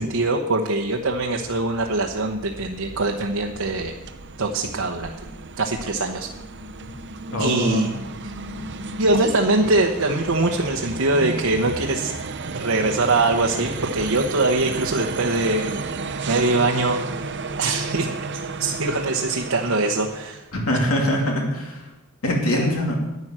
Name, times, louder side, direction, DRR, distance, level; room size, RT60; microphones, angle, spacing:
voice 1, 0.0-3.9 4.4-5.1 5.6-6.3 7.4-7.9 8.2-8.3 9.0-12.1 12.5-15.8 16.3-17.0 17.3-18.1 18.6-20.4 22.5-22.7, right 2 dB, 70° right, 2 dB, 1.0 m, -23 dB
sound 1, 0.8-20.5, right 3 dB, 55° right, 0.8 m, -33 dB
voice 2, 7.3-7.8 20.5-21.8 22.2-23.0, equal, 70° left, 0 dB, 2.7 m, -22 dB
11.0 x 9.6 x 7.5 m, 1.0 s
head